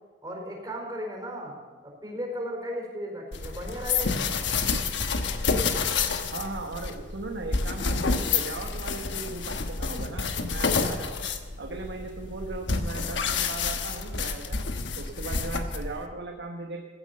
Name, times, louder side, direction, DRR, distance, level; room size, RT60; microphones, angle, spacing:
voice 1, 0.2-1.6 1.8-4.4, equal, 25° right, 0 dB, 4.5 m, -36 dB
sound 1, 3.3-16.1, left 4 dB, 85° left, 1.1 m, -29 dB
voice 2, 6.3-11.3 11.6-14.6 14.9-16.8, right 3 dB, 75° right, 2 dB, 1.2 m, -38 dB
15.5 x 9.5 x 6.7 m, 1.4 s
head